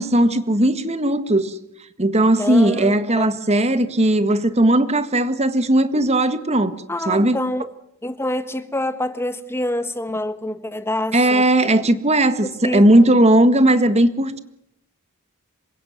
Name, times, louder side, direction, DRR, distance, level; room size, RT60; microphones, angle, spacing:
voice 1, 0.0-1.6 2.0-6.7 7.1-7.4 11.1-14.4, right 1 dB, 30° right, 1.7 m, -17 dB
voice 2, 2.4-3.3 6.9-7.7 8.0-11.4 12.4-12.8, left 1 dB, 10° left, 1.4 m, -26 dB
27.0 x 17.0 x 9.2 m
head